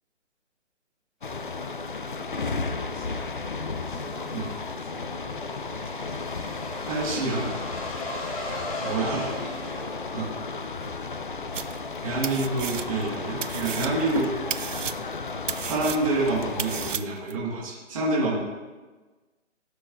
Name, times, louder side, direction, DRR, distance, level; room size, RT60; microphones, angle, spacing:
sound 1, 1.2-17.0, left 4 dB, 45° left, 0.4 m, -34 dB
voice 1, 2.0-5.2 8.9-10.2, equal, ahead, -17 dB, 3.0 m, -44 dB
sound 2, 4.1-10.7, left 1 dB, 30° left, 1.3 m, -38 dB
voice 2, 6.9-7.6 8.8-9.2 10.1-10.3 12.0-14.3 15.6-18.4, right 2 dB, 25° right, -5 dB, 1.6 m, -27 dB
sound 3, 11.5-12.0 12.2-13.1 13.4-17.3, right 8 dB, 75° right, 0.6 m, -33 dB
15.5 x 6.8 x 2.5 m, 1.3 s
hypercardioid pair, 170°, 37 cm